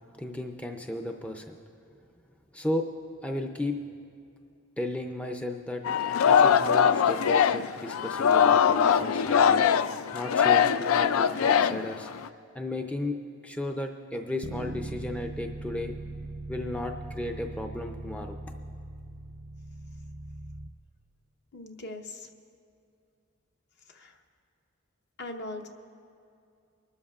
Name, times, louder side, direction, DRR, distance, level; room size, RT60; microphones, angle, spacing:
voice 1, 0.2-1.6 2.5-2.9 3.2-3.8 4.8-5.8 6.2-9.7 10.1-12.1 12.5-13.2 13.4-16.0 16.5-18.4, left 1 dB, 5° left, 3 dB, 0.4 m, -34 dB
Singing, 5.8-12.3, left 7 dB, 90° left, 0.4 m, -22 dB
Bass guitar, 14.4-20.7, right 2 dB, 80° right, 0.7 m, -40 dB
voice 2, 21.5-22.3 23.9-24.2 25.2-25.7, left 2 dB, 55° left, 4 dB, 0.9 m, -40 dB
24.5 x 12.5 x 2.4 m, 2.4 s
head